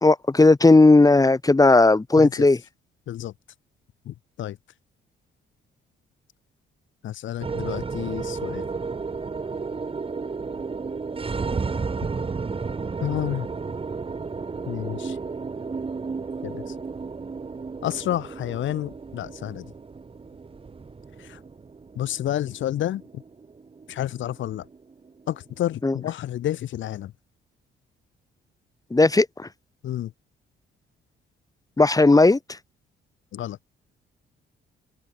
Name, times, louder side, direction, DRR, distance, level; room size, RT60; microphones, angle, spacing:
voice 1, 0.0-2.6 25.8-26.0 28.9-29.5 31.8-32.6, left 2 dB, 20° left, 2.0 m, -16 dB
voice 2, 2.2-2.5 3.1-3.3 4.1-4.6 7.0-8.7 13.0-13.5 14.7-15.2 16.4-16.7 17.8-19.7 21.2-21.4 22.0-23.2 23.9-24.7 25.3-27.1 29.8-30.1 33.3-33.6, left 12 dB, 75° left, 1.7 m, -30 dB
sound 1, 7.4-25.8, right 4 dB, 30° right, 1.7 m, -33 dB
open air
cardioid pair, 90°, 20 cm